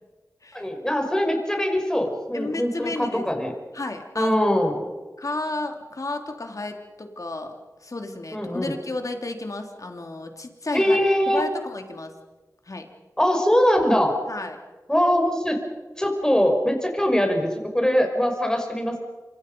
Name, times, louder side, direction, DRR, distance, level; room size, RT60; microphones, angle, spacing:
voice 1, 0.5-3.5 4.2-4.7 8.3-8.7 10.7-11.4 13.2-14.1 14.9-15.6 16.0-19.0, equal, 10° left, 3 dB, 5.5 m, -22 dB
voice 2, 2.3-3.3 3.7-4.4 5.2-7.5 7.8-11.0 11.3-12.1 12.7-12.9 14.3-14.6, left 2 dB, 60° left, 4 dB, 3.2 m, -32 dB
27.5 x 25.5 x 5.5 m, 1.2 s
wide cardioid pair, 50°, 6 cm